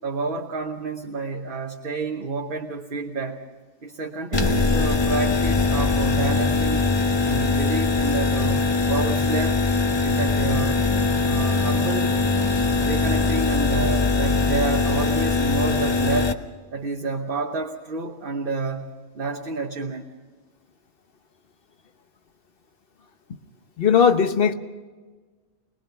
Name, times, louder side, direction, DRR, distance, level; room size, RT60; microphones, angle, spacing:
voice 1, 0.0-3.4 3.8-6.9 7.2-9.6 10.0-10.9 11.2-12.2 12.8-16.4 16.7-20.1, right 3 dB, 45° right, 2 dB, 1.2 m, -29 dB
sound 1, 4.3-16.3, left 3 dB, 25° left, 0.7 m, -21 dB
sound 2, 10.9-16.0, left 1 dB, 25° right, 1.6 m, -37 dB
voice 2, 23.8-24.5, left 7 dB, 50° left, 9 dB, 1.1 m, -18 dB
21.5 x 21.5 x 5.8 m, 1.4 s
omnidirectional pair, 1.3 m